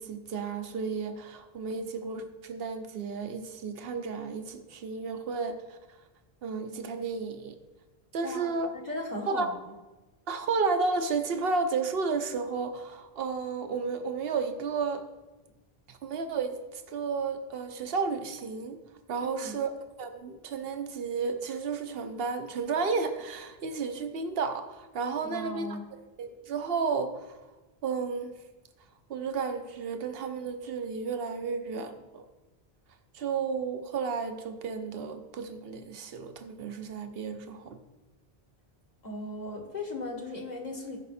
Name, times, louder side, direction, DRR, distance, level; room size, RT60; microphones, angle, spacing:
voice 1, 0.0-5.8 6.4-7.6 8.1-8.7 9.3-9.5 10.3-15.0 15.9-18.8 19.1-19.7 20.0-25.8 26.2-27.4 27.8-28.3 29.1-32.2 33.1-37.8, right 4 dB, 65° right, 7 dB, 1.1 m, -32 dB
voice 2, 8.2-9.6 19.2-19.6 25.2-25.8 39.0-41.0, left 1 dB, 45° left, 0 dB, 1.6 m, -37 dB
15.0 x 5.4 x 4.3 m, 1.1 s
omnidirectional pair, 1.1 m